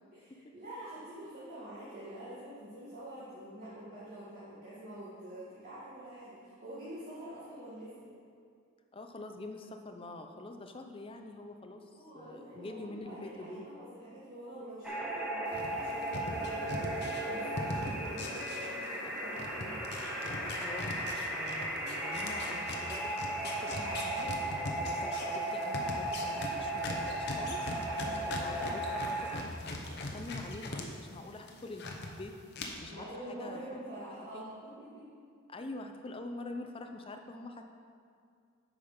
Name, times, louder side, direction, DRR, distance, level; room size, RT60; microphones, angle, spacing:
voice 1, 0.1-7.9 11.9-19.9 28.0-28.3 32.9-35.1, right 1 dB, 40° right, -10 dB, 1.8 m, -46 dB
voice 2, 8.9-13.7 20.4-24.3 24.8-27.7 28.1-32.3 32.8-33.6 34.1-34.5 35.5-37.6, left 2 dB, 25° left, 5 dB, 0.5 m, -45 dB
sound 1, 14.8-29.4, right 1 dB, 5° right, 1.1 m, -36 dB
sound 2, 15.5-19.1 19.4-30.8 31.2-32.1 32.5-32.6, left 2 dB, 50° left, 0.9 m, -40 dB
8.9 x 5.6 x 5.1 m, 2.3 s
head